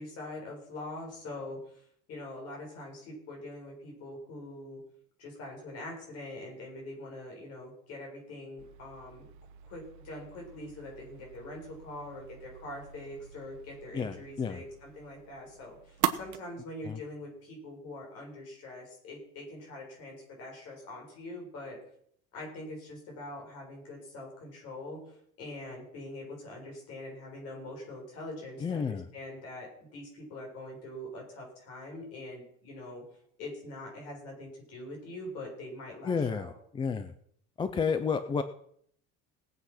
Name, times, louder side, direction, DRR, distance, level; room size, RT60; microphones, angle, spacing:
voice 1, 0.0-1.8 2.1-4.8 5.2-9.3 9.6-21.8 22.3-33.0 33.4-36.5, left 1 dB, 50° left, -1 dB, 7.0 m, -43 dB
sound 1, 8.6-16.4, right 12 dB, 65° right, 1.2 m, -40 dB
voice 2, 13.9-14.6 16.9-17.0 28.6-29.1 36.0-37.1 37.6-38.4, left 5 dB, 15° left, 11 dB, 0.4 m, -31 dB
19.0 x 8.3 x 5.8 m, 0.66 s
cardioid pair, 180°, 32 cm